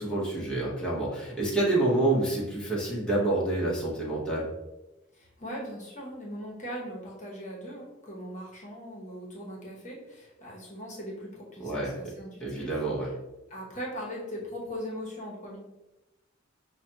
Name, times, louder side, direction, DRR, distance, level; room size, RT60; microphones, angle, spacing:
voice 1, 0.0-4.5 11.6-12.1 12.4-13.1, right 2 dB, 5° left, -7 dB, 0.9 m, -28 dB
voice 2, 5.1-13.2 13.5-15.6, equal, 40° left, -3 dB, 0.9 m, -40 dB
5.5 x 2.2 x 2.7 m, 0.99 s
head